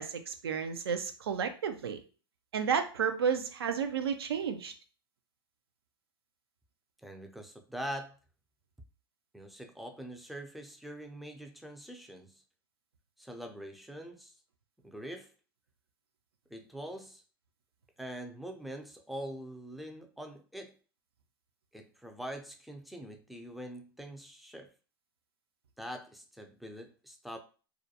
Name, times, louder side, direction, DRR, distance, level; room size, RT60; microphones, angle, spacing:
voice 1, 0.0-2.0 2.5-4.7, right 7 dB, 90° right, 0.5 m, -32 dB
voice 2, 7.0-8.2 9.3-12.4 13.2-14.3 14.8-15.3 16.5-17.2 18.0-20.7 21.7-24.7 25.8-27.4, equal, ahead, 0.4 m, -43 dB
2.4 x 2.1 x 2.7 m
hypercardioid pair, 105°, 13 cm